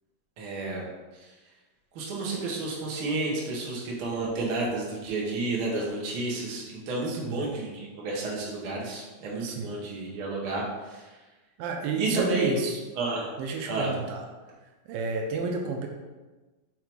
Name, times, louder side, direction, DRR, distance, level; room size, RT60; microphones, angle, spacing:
voice 1, 0.4-0.9 1.2-1.3 1.9-11.1 11.9-12.6 13.0-13.3 13.7-13.9, right 2 dB, 60° right, -4 dB, 1.4 m, -31 dB
voice 2, 7.1-7.5 9.4-9.7 11.6-12.8 13.4-14.3 14.9-15.9, right 3 dB, 80° right, 3 dB, 2.3 m, -31 dB
5.6 x 3.8 x 4.5 m, 1.2 s
omnidirectional pair, 4.1 m